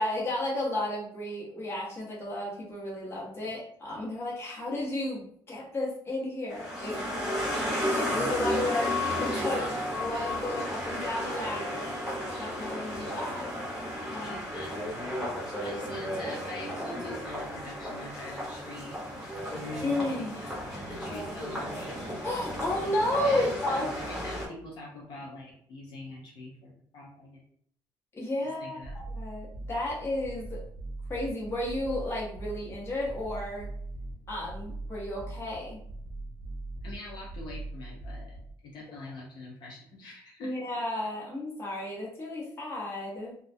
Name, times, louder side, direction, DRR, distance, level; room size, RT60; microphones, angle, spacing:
voice 1, 0.0-7.0 7.5-11.9 12.4-13.5 14.1-14.3 19.8-20.3 22.2-23.9 28.1-28.8 29.1-30.6 31.1-33.7 34.3-35.8 40.4-43.4, left 1 dB, 30° left, -5 dB, 0.9 m, -33 dB
sound 1, 6.5-24.5, equal, 5° right, 0.9 m, -33 dB
voice 2, 14.2-14.9 15.6-19.1 19.5-22.1 23.2-27.4 28.6-29.0 36.8-38.4 38.6-40.6, left 2 dB, 65° left, -3 dB, 0.6 m, -44 dB
sound 2, 28.8-38.5, right 2 dB, 50° right, 0.7 m, -41 dB
2.3 x 2.1 x 2.6 m, 0.63 s
cardioid pair, 130°, 9 cm